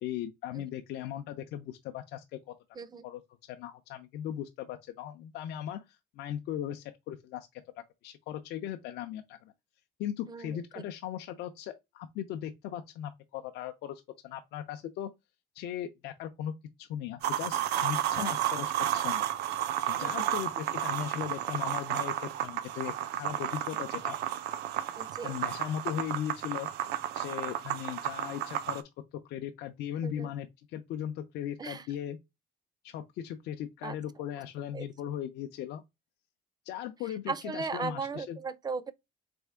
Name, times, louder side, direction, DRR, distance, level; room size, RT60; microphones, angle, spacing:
voice 1, 0.0-2.5 3.0-3.2 3.5-7.5 8.0-9.5 10.0-15.1 15.5-16.5 16.8-19.2 19.9-24.2 25.2-26.7 27.1-28.8 29.2-32.2 32.8-35.8 36.6-38.4, left 10 dB, 80° left, 0.5 m, -38 dB
voice 2, 10.3-10.6 18.2-18.3 20.0-20.3 25.0-25.3 30.0-30.3 31.6-31.8 33.8-33.9 34.7-34.9 37.3-38.9, right 4 dB, 25° right, 0.4 m, -37 dB
sound 1, 17.2-28.8, right 11 dB, 80° right, 0.6 m, -32 dB
3.5 x 3.5 x 3.4 m
cardioid pair, 110°, 17 cm